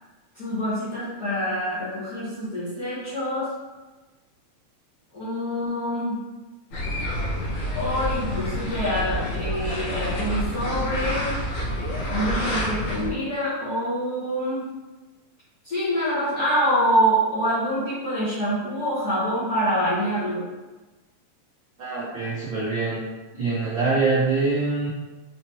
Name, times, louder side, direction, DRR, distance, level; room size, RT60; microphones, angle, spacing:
voice 1, 0.3-3.5 5.1-6.2 7.7-11.3 12.0-14.6 15.6-20.4, equal, 50° left, -11 dB, 1.2 m, -25 dB
sound 1, 6.7-13.1, equal, 85° left, 2.3 m, -28 dB
voice 2, 21.8-23.0 23.3-24.9, right 3 dB, 90° right, -7 dB, 1.0 m, -24 dB
5.6 x 2.9 x 3.0 m, 1.2 s
omnidirectional pair, 3.3 m